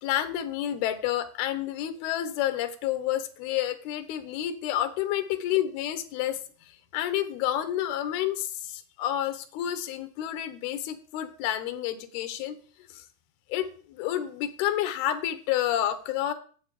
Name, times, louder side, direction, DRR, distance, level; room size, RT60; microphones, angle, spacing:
voice 1, 0.0-6.4 6.9-12.6 12.9-13.0 13.5-16.3, left 11 dB, 85° left, 9 dB, 2.9 m, -29 dB
9.5 x 7.7 x 4.8 m, 0.42 s
omnidirectional pair, 4.4 m